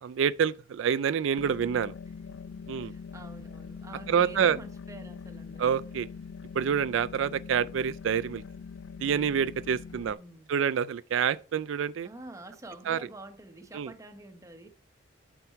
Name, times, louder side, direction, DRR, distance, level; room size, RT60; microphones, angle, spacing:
voice 1, 0.0-1.9 2.7-2.9 4.1-4.6 5.6-6.1 6.5-8.4 9.0-10.2 10.5-12.1 12.9-13.0 13.7-13.9, right 7 dB, 75° right, 0.3 m, -27 dB
sound 1, 1.4-10.1, left 5 dB, 80° left, 0.4 m, -43 dB
voice 2, 2.8-5.8 9.9-10.5 12.0-14.7, right 1 dB, 15° right, 1.1 m, -47 dB
9.0 x 6.0 x 4.6 m
head